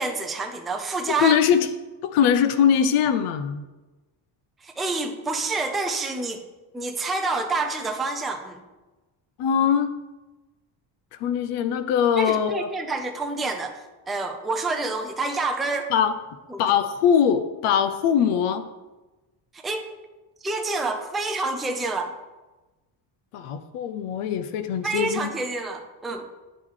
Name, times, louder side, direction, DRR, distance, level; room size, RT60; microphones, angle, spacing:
voice 1, 0.0-1.4 4.6-6.4 6.7-8.6 12.2-13.8 14.1-15.9 16.5-16.6 19.6-19.9 20.4-22.1 24.8-26.2, right 3 dB, ahead, 3 dB, 0.3 m, -28 dB
voice 2, 1.2-1.7 2.0-3.6 9.4-9.9 11.2-12.7 15.9-16.1 16.6-18.7 23.3-25.3, left 8 dB, 85° left, 9 dB, 0.6 m, -21 dB
9.8 x 3.6 x 3.2 m, 1.1 s
cardioid pair, 125°, 49 cm